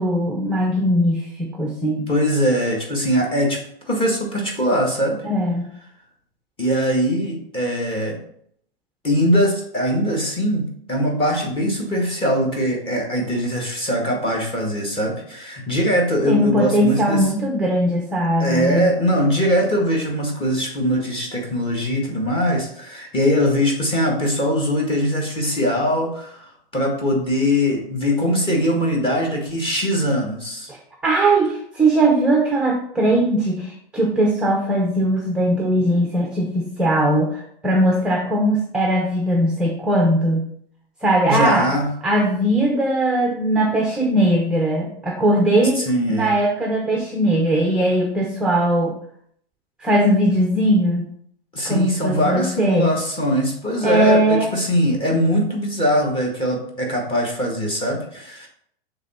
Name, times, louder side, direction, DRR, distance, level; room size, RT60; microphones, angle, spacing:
voice 1, 0.0-2.1 5.2-5.7 16.3-18.9 30.7-30.8 31.0-40.4 41.0-41.7 42.0-48.9 49.8-51.1 51.6-52.9 53.8-54.5, right 1 dB, 5° right, 1 dB, 0.6 m, -19 dB
voice 2, 2.1-3.6 3.9-5.2 6.6-8.2 9.0-17.3 18.4-30.7 41.2-41.9 45.8-46.4 51.5-58.5, equal, 15° left, -1 dB, 1.7 m, -21 dB
7.2 x 3.4 x 4.3 m, 0.67 s
hypercardioid pair, 130°, 29 cm